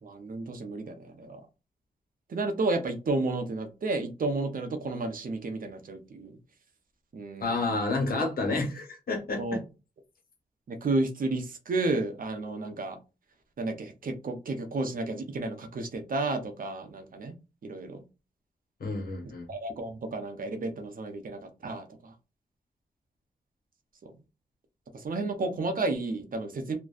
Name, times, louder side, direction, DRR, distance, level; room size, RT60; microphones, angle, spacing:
voice 1, 0.0-1.4 2.3-6.4 7.1-7.8 9.4-9.6 10.7-13.0 13.6-17.3 17.6-18.0 19.5-22.1 24.0-24.1 24.9-26.8, right 2 dB, 60° right, 0.7 m, -32 dB
voice 2, 7.4-9.6 18.8-19.5, left 3 dB, 70° left, 1.1 m, -30 dB
2.5 x 2.1 x 2.4 m
cardioid pair, 55°, 16 cm